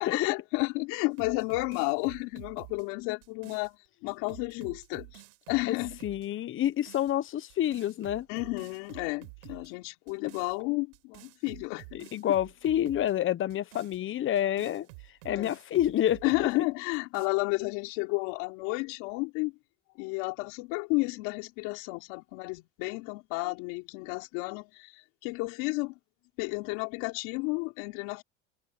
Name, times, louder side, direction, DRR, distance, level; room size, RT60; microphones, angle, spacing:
voice 1, 0.0-5.2 5.5-6.0 8.3-12.1 15.3-15.6 16.2-19.5 20.0-25.9 26.4-28.2, left 26 dB, 75° left, 3.4 m, -32 dB
sound 1, 1.1-3.7 4.1-6.3 6.6-7.1 7.5-9.7 10.1-10.6 10.9-13.1 13.5-16.6 16.9-17.3, right 30 dB, 80° right, 4.4 m, -50 dB
voice 2, 6.0-8.3 11.9-14.9 15.2-16.5, left 11 dB, 45° left, 1.1 m, -28 dB
supercardioid pair, 95°, 29 cm